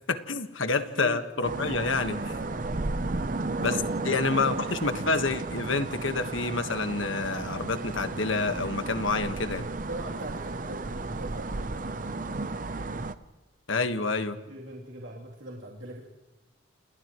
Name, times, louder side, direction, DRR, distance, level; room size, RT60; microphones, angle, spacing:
voice 1, 0.1-2.4 3.6-3.8 4.0-9.7 13.7-14.4, left 3 dB, 75° left, 8 dB, 1.6 m, -28 dB
voice 2, 0.6-1.2 2.3-2.8 3.5-4.3 9.8-12.1 14.5-16.0, right 1 dB, 80° right, -3 dB, 3.2 m, -41 dB
sound 1, 1.4-13.1, right 3 dB, 40° right, 0.7 m, -33 dB
29.5 x 29.0 x 3.1 m, 1.2 s
head